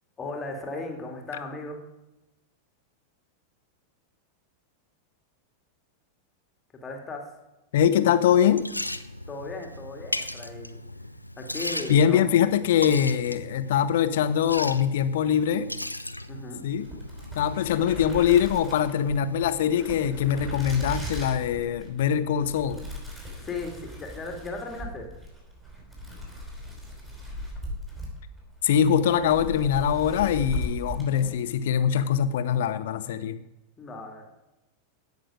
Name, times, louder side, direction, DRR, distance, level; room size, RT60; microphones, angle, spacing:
voice 1, 0.2-1.8 6.8-7.2 9.3-10.8 11.4-12.3 16.3-16.6 23.4-25.1 33.8-34.3, left 3 dB, 20° left, 2 dB, 2.5 m, -36 dB
voice 2, 7.7-8.6 11.9-15.7 16.6-16.9 17.4-22.8 28.6-33.4, left 9 dB, 55° left, 12 dB, 0.8 m, -23 dB
Liquid, 8.2-20.5, left 1 dB, 85° left, 0.5 m, -38 dB
sound 1, 16.8-31.7, left 1 dB, 10° right, 5.1 m, -38 dB
16.5 x 6.7 x 5.0 m, 0.98 s
figure-of-eight pair, 90°, 0 cm